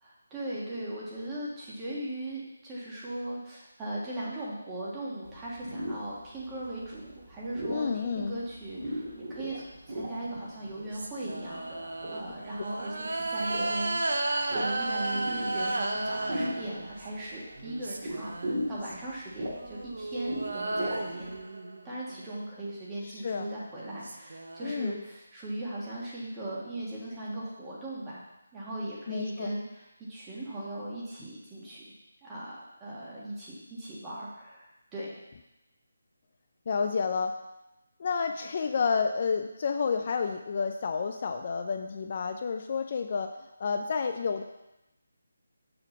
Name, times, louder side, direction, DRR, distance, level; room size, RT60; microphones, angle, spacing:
voice 1, 0.0-9.6 9.9-14.2 14.5-21.3 21.9-28.2 28.5-31.8 32.2-35.1, right 1 dB, 10° right, -7 dB, 1.6 m, -38 dB
sound 1, 5.2-21.4, equal, 40° right, 2.3 m, -39 dB
voice 2, 7.7-8.4 23.2-23.5 24.6-25.0 29.1-29.5 36.7-37.3 38.0-43.3 43.6-44.4, left 5 dB, 40° left, 6 dB, 0.4 m, -30 dB
sound 2, 10.3-17.2 17.6-18.9 19.5-22.2 23.5-23.6 23.8-24.7, right 2 dB, 70° right, 0.8 m, -34 dB
6.7 x 3.8 x 5.9 m, 0.94 s
figure-of-eight pair, 165°, 0 cm